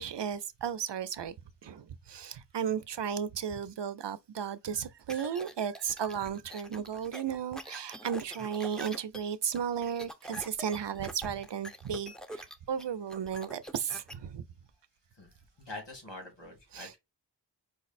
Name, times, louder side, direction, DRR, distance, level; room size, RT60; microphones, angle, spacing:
voice 1, 0.0-1.3 1.6-14.4 16.7-16.9, right 8 dB, 80° right, 0.5 m, -34 dB
sound 1, 5.1-14.1, equal, ahead, 0.7 m, -45 dB
voice 2, 15.6-17.0, left 2 dB, 85° left, 2.3 m, -44 dB
4.9 x 2.0 x 4.1 m
wide cardioid pair, 50°, 42 cm